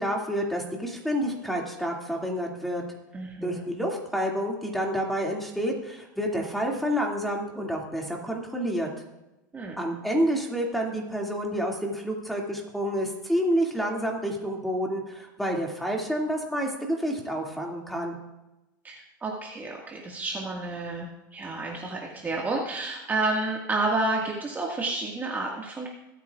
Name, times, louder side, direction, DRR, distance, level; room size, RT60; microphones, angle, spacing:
voice 1, 0.0-2.8 3.4-8.9 9.8-18.2, equal, ahead, -1 dB, 2.4 m, -29 dB
voice 2, 3.1-3.6 9.5-9.8 18.8-25.9, right 2 dB, 15° right, -2 dB, 1.8 m, -30 dB
24.0 x 9.1 x 2.4 m, 0.97 s
supercardioid pair, 120°, 11 cm